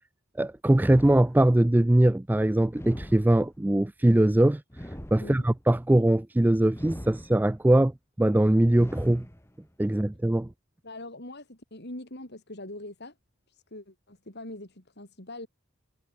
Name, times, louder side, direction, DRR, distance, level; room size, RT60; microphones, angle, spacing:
voice 1, 0.4-7.9 8.2-9.3 9.8-10.5, right 1 dB, 10° right, 0.3 m, -22 dB
sound 1, 0.7-1.8 2.7-3.8 4.7-5.8 6.7-7.7 8.7-9.7, equal, 10° left, 3.7 m, -42 dB
voice 2, 10.8-13.1 13.5-15.5, left 1 dB, 55° left, 5.1 m, -42 dB
head